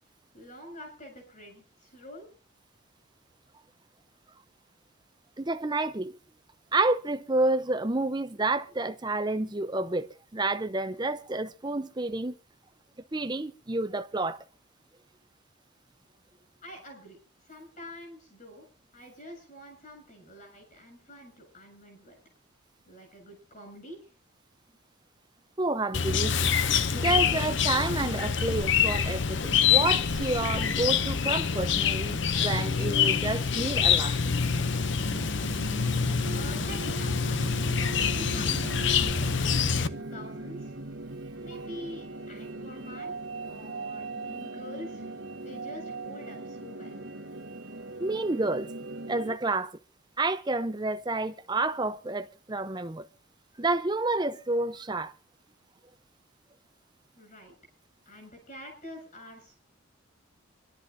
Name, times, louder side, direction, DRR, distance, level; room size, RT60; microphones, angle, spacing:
voice 1, 0.3-2.3 16.6-17.2 17.4-18.7 18.9-22.2 22.9-24.1 36.3-37.5 37.7-40.8 41.4-43.2 43.5-47.1 57.2-57.5 58.1-59.5, left 1 dB, 40° left, 7.5 m, -46 dB
voice 2, 5.4-6.2 6.7-12.3 13.1-14.4 25.6-26.5 26.9-34.2 48.0-48.7 49.1-49.8 50.2-53.1 53.6-55.1, right 2 dB, 20° right, 0.7 m, -29 dB
Chirp tweet, 25.9-39.9, left 7 dB, 55° left, 0.7 m, -26 dB
sound 1, 34.2-49.4, right 2 dB, 65° right, 1.3 m, -39 dB
26.5 x 12.5 x 2.7 m
head